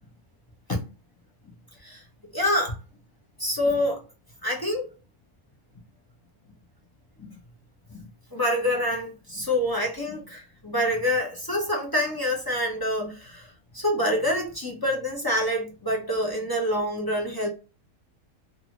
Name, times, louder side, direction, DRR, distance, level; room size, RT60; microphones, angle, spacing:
voice 1, 2.3-2.8 3.4-4.0 4.4-4.9 7.2-7.4 7.9-8.0 8.3-17.5, left 1 dB, 30° left, 0.4 m, -26 dB
2.5 x 2.5 x 2.9 m
omnidirectional pair, 1.5 m